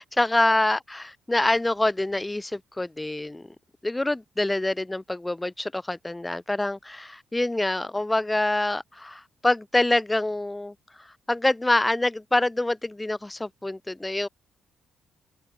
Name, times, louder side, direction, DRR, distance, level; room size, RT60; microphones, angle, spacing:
voice 1, 0.0-3.5 3.8-14.3, left 2 dB, 10° left, 0.9 m, -26 dB
cardioid pair, 90°, 0 cm